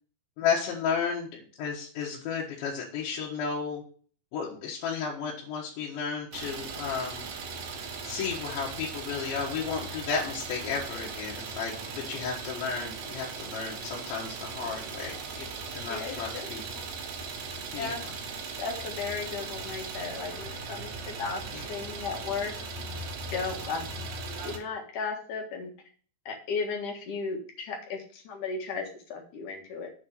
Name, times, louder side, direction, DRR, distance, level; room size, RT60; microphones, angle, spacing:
voice 1, 0.4-3.8 4.3-7.3 8.0-16.8 17.7-18.1 21.5-21.7, left 6 dB, 85° left, -4 dB, 3.7 m, -33 dB
Idling, 6.3-24.6, right 4 dB, 75° right, 3.7 m, -38 dB
voice 2, 15.9-16.5 17.8-18.0 18.6-21.4 21.7-22.5 23.3-24.1 24.4-25.7 26.3-29.9, left 5 dB, 55° left, 1 dB, 2.6 m, -35 dB
8.1 x 4.3 x 6.4 m, 0.43 s
omnidirectional pair, 5.1 m